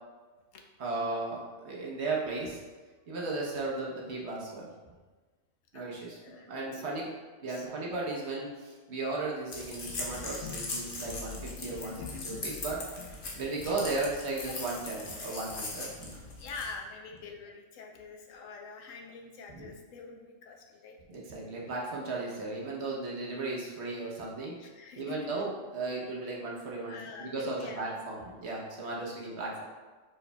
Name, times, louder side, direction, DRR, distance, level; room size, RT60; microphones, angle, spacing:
voice 1, 0.8-2.6 3.1-4.7 5.7-7.1 7.4-12.8 13.3-16.2 19.5-19.7 21.1-24.6 25.0-29.6, right 3 dB, 60° right, -3 dB, 1.1 m, -35 dB
voice 2, 6.2-6.8 7.4-7.7 11.6-12.5 16.4-21.0 22.3-22.4 24.6-25.2 26.9-28.0, left 4 dB, 80° left, 2 dB, 1.0 m, -45 dB
sound 1, 9.5-16.8, left 3 dB, 45° left, 0.9 m, -40 dB
5.1 x 4.6 x 2.2 m, 1.3 s
omnidirectional pair, 1.4 m